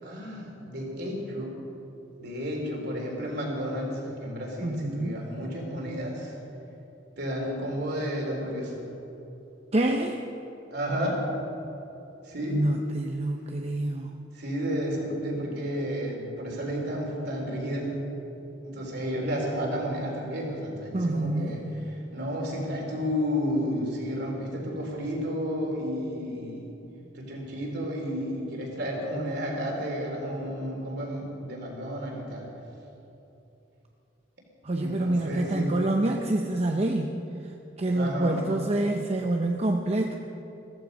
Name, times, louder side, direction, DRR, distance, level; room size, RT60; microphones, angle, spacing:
voice 1, 0.0-1.5 2.2-6.4 7.2-8.7 10.7-11.2 12.2-12.6 14.3-17.9 18.6-21.6 22.1-26.7 27.1-32.5 34.8-35.7 37.9-38.4, equal, 60° right, -1 dB, 3.6 m, -32 dB
voice 2, 4.6-5.3 9.7-10.2 12.5-14.1 20.9-21.6 34.6-37.1 37.8-40.2, right 1 dB, 35° right, 3 dB, 0.7 m, -27 dB
15.0 x 14.5 x 5.4 m, 2.9 s
head